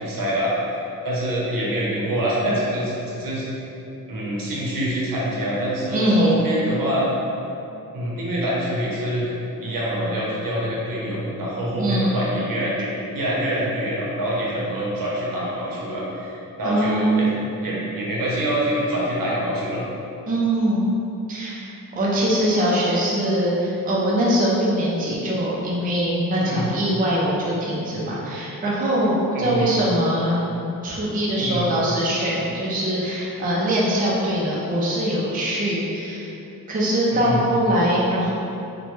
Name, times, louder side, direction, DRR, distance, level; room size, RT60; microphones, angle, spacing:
voice 1, 0.0-3.6 4.1-7.1 7.9-9.3 9.6-17.3 17.6-19.8 26.3-26.7 29.3-29.7 31.4-31.7 37.1-37.4, equal, 75° right, -5 dB, 0.7 m, -25 dB
voice 2, 5.9-6.3 11.7-12.1 16.6-17.3 20.3-20.8 21.3-21.7 22.0-30.4 30.8-36.3 36.7-38.3, right 1 dB, 25° right, -6 dB, 0.4 m, -22 dB
3.0 x 2.1 x 3.0 m, 2.8 s
wide cardioid pair, 175°, 34 cm